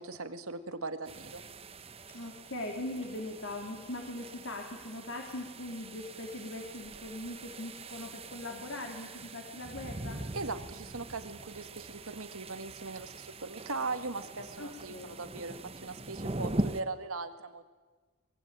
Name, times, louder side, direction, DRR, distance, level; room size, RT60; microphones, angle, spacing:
voice 1, 0.0-1.4 10.3-17.6, right 3 dB, 80° right, 8 dB, 2.0 m, -39 dB
sound 1, 1.0-16.8, right 2 dB, 25° right, 1.0 m, -42 dB
voice 2, 2.1-10.2 14.6-15.2, left 2 dB, 60° left, 1 dB, 3.1 m, -41 dB
24.0 x 21.0 x 8.9 m, 1.4 s
head